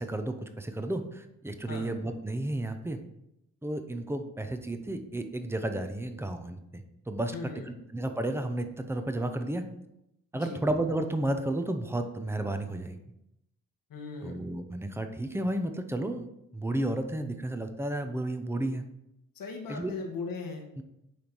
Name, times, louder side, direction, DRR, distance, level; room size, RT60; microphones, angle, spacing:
voice 1, 0.0-3.0 3.6-7.4 7.7-9.6 10.3-13.0 14.2-16.3 16.5-18.8 19.7-19.9 20.8-20.9, right 1 dB, 5° right, 7 dB, 0.8 m, -32 dB
voice 2, 7.3-7.6 10.3-10.6 13.9-14.3 19.3-20.6, left 4 dB, 80° left, 2 dB, 1.4 m, -38 dB
9.3 x 3.6 x 4.6 m, 0.84 s
cardioid pair, 80°, 34 cm